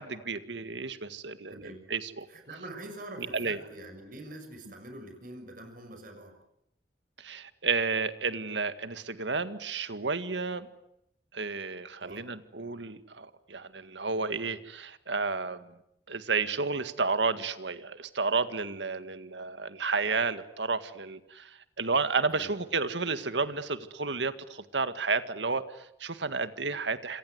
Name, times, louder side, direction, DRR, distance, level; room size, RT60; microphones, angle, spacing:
voice 1, 0.0-1.6 1.9-2.3 3.3-3.6 7.2-10.7 11.3-15.7 16.1-27.2, right 4 dB, 90° right, 11 dB, 1.9 m, -31 dB
voice 2, 1.5-1.8 2.3-6.3 12.0-12.3 22.3-22.5, right 1 dB, 50° right, 6 dB, 6.3 m, -45 dB
27.5 x 26.5 x 8.1 m, 0.80 s
head